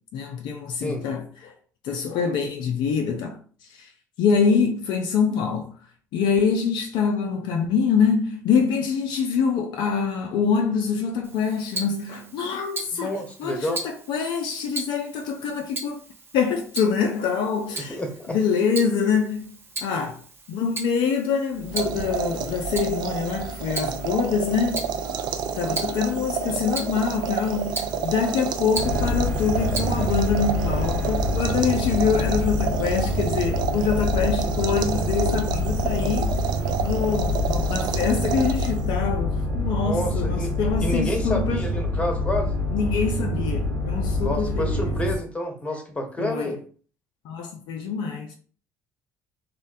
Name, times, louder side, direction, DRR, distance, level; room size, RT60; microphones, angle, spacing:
voice 1, 0.1-1.5 1.8-3.4 3.7-3.9 4.2-5.7 6.1-13.1 13.4-16.0 16.3-18.0 18.3-19.5 19.8-20.2 20.5-24.8 25.6-36.4 36.8-41.6 42.7-44.9 46.2-46.6 47.2-48.3, left 6 dB, 60° left, 0.4 m, -25 dB
Tick-tock, 11.2-30.3, right 2 dB, 25° right, 0.7 m, -38 dB
voice 2, 12.9-13.8 17.7-18.4 33.7-33.8 39.8-40.5 40.8-42.6 44.2-46.6, left 1 dB, 15° left, 0.8 m, -29 dB
sound 1, 21.6-39.0, right 6 dB, 55° right, 0.4 m, -29 dB
sound 2, 28.7-45.2, left 1 dB, 75° right, 1.2 m, -26 dB
2.5 x 2.1 x 2.4 m
hypercardioid pair, 55°, 9 cm